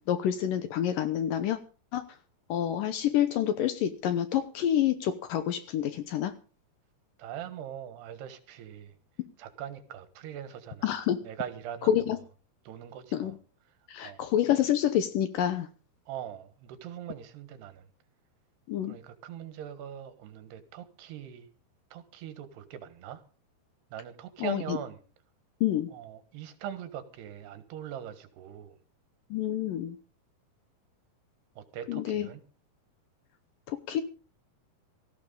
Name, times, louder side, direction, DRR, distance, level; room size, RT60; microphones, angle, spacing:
voice 1, 0.0-1.6 1.9-2.0 2.5-6.3 10.8-11.2 11.9-12.2 13.1-13.3 13.9-15.7 18.7-19.0 24.4-24.8 25.6-25.9 29.3-30.0 31.9-32.3 33.7-34.0, left 10 dB, 75° left, 11 dB, 2.2 m, -28 dB
voice 2, 7.2-9.0 9.4-11.0 11.2-12.1 12.7-13.4 14.0-14.2 16.1-17.9 18.8-21.5 21.9-23.2 23.9-25.0 25.9-28.8 31.6-32.4, right 9 dB, 85° right, 11 dB, 3.5 m, -41 dB
18.0 x 14.5 x 3.9 m, 0.37 s
omnidirectional pair, 4.7 m